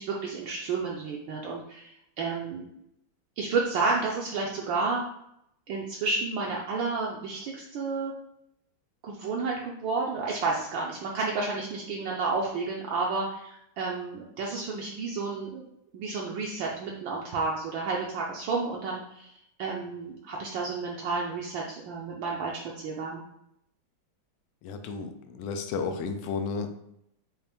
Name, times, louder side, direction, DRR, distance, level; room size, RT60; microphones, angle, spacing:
voice 1, 0.0-2.6 3.4-5.0 5.7-8.1 9.0-15.6 15.9-19.3 19.6-23.2, right 4 dB, 70° right, -3 dB, 1.3 m, -31 dB
voice 2, 24.6-26.7, left 5 dB, 85° left, 7 dB, 1.5 m, -33 dB
5.6 x 2.5 x 3.4 m, 0.77 s
omnidirectional pair, 2.3 m